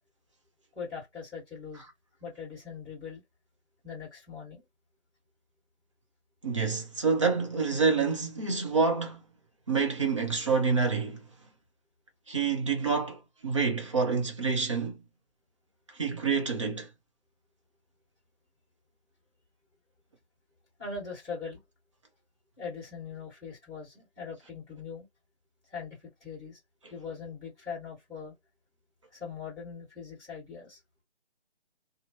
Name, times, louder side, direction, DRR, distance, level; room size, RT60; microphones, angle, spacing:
voice 1, 0.7-1.8 2.2-3.2 3.8-4.6 20.8-21.6 22.6-25.1 25.7-26.6 26.9-28.3 29.1-30.8, left 5 dB, 10° left, 1.4 m, -41 dB
voice 2, 6.4-9.2 9.7-11.2 12.3-15.0 16.0-16.9, right 5 dB, 25° right, 0.6 m, -27 dB
3.0 x 2.0 x 2.8 m
figure-of-eight pair, 155°, 35 cm